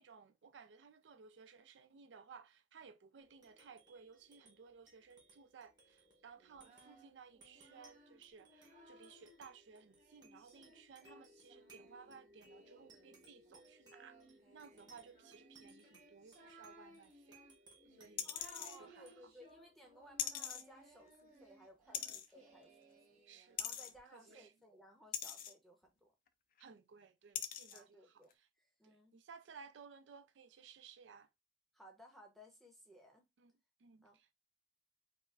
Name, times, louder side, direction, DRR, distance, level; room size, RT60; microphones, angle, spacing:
voice 1, 0.0-17.4 18.0-18.3 18.8-19.1 23.3-23.6 24.1-24.5 26.6-28.0 28.4-28.5 28.8-31.3 33.4-33.5 33.8-34.3, right 5 dB, 85° right, 0.4 m, -59 dB
sound 1, 3.2-22.1, right 1 dB, 25° right, 1.0 m, -66 dB
Singing, 6.4-9.4 9.9-24.4, right 2 dB, 40° right, 1.1 m, -63 dB
sound 2, 18.2-18.8 20.2-20.6 21.9-22.3 23.6-23.9 25.1-25.5 26.6-26.7 27.4-27.8 28.3-28.4, left 10 dB, 50° left, 0.3 m, -41 dB
voice 2, 18.2-23.2 23.6-26.1 27.7-28.3 28.6-29.2 31.7-33.3 34.0-34.3, equal, ahead, 0.7 m, -60 dB
4.7 x 2.0 x 2.3 m
head